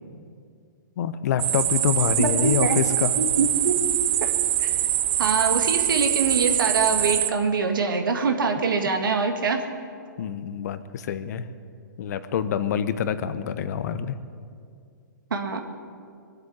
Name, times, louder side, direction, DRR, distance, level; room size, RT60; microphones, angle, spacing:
voice 1, 1.0-3.1 10.2-11.5 12.0-14.2, left 8 dB, 55° left, 12 dB, 1.0 m, -26 dB
sound 1, 1.4-7.3, right 12 dB, 40° right, 0.8 m, -24 dB
voice 2, 2.2-2.8 3.2-3.7 4.2-4.3 4.6-4.7 5.2-9.6 15.3-15.6, right 4 dB, 80° right, 5 dB, 1.9 m, -24 dB
21.0 x 8.1 x 8.5 m, 2.3 s
hypercardioid pair, 140°, 11 cm